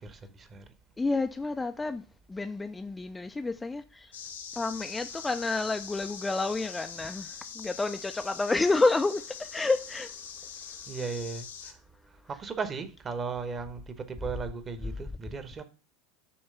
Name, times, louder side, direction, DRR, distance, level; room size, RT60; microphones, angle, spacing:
voice 1, 1.0-2.0 2.3-4.1 4.6-10.1, left 3 dB, 15° left, 0.3 m, -29 dB
sound 1, 4.1-11.7, left 7 dB, 75° left, 0.8 m, -43 dB
voice 2, 10.9-11.7 12.3-15.6, right 5 dB, 25° right, 1.0 m, -36 dB
6.9 x 3.1 x 5.5 m
figure-of-eight pair, 80°, 0 cm